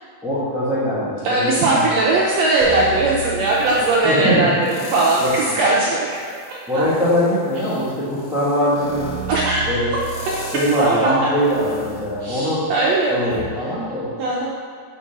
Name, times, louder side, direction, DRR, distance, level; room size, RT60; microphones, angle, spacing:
voice 1, 0.2-1.9 4.0-4.5 5.2-5.4 6.7-9.1 9.7-9.9 10.5-12.7 13.1-14.1, equal, ahead, -10 dB, 0.8 m, -21 dB
voice 2, 1.2-6.1 6.5-6.8 9.3-9.7 10.7-11.1 12.2-13.4 14.2-14.5, right 2 dB, 75° right, -5 dB, 1.6 m, -19 dB
sound 1, 2.6-4.0 4.6-5.7 6.2-12.9 13.3-13.4, right 4 dB, 75° left, 2.9 m, -33 dB
6.0 x 4.6 x 5.9 m, 2.1 s
omnidirectional pair, 3.7 m